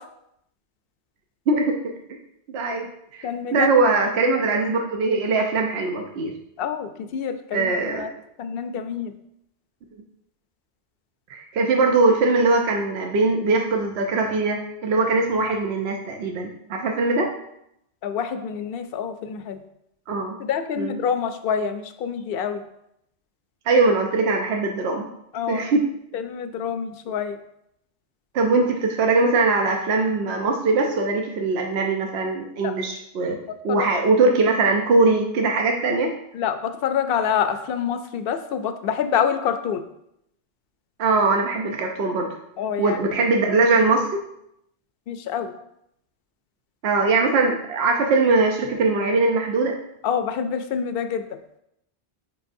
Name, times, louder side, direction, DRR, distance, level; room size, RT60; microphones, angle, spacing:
voice 1, 1.5-1.8 2.1-2.2 2.5-2.9 3.1-6.3 7.5-8.1 11.3-17.3 20.1-20.4 20.8-21.0 23.7-25.1 25.5-25.8 28.3-33.4 33.6-36.1 41.0-42.4 42.8-44.2 46.8-49.7, right 3 dB, 70° right, 2 dB, 0.9 m, -21 dB
voice 2, 3.2-3.7 4.3-4.4 6.6-8.1 8.4-9.1 18.0-19.6 20.5-22.6 25.3-25.7 26.1-27.4 32.6-32.7 33.7-34.0 36.3-39.8 42.6-43.0 45.1-45.5 50.0-51.2, left 7 dB, 65° left, 9 dB, 0.7 m, -26 dB
7.7 x 4.9 x 2.6 m, 0.80 s
omnidirectional pair, 1.1 m